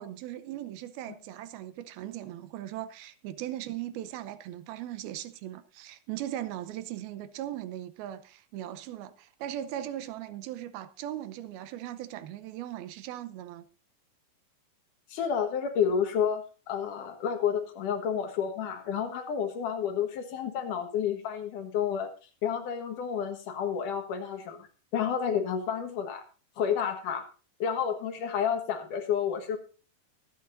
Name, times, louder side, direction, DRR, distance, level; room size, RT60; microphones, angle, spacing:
voice 1, 0.0-13.7, right 12 dB, 85° right, 2.7 m, -39 dB
voice 2, 15.1-22.1 22.4-24.7 24.9-26.2 26.6-27.2 27.6-29.6, left 7 dB, 65° left, 2.8 m, -30 dB
24.5 x 8.8 x 2.6 m
omnidirectional pair, 4.3 m